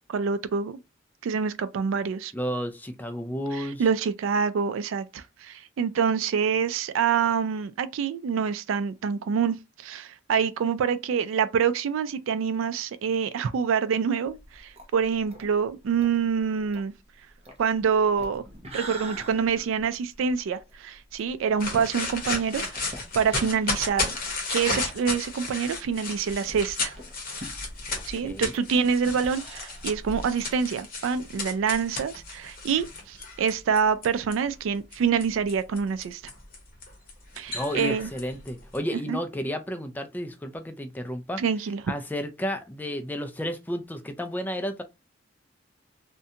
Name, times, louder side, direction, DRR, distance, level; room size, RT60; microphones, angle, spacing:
voice 1, 0.1-0.8 1.2-2.3 3.5-16.9 17.6-18.4 18.7-24.2 24.5-26.9 28.0-36.2 37.4-38.1 39.1-39.2 41.4-41.8, right 6 dB, 70° right, 0.3 m, -26 dB
voice 2, 2.3-3.8 27.9-28.5 37.5-41.4 41.9-44.8, equal, 10° left, 0.3 m, -32 dB
sound 1, 14.3-24.5 24.8-24.9 25.2-25.3 26.0-30.5, right 1 dB, 30° right, 0.6 m, -44 dB
sound 2, 21.6-34.3 34.9-38.8, left 3 dB, 45° left, 0.8 m, -33 dB
2.5 x 2.2 x 2.7 m
head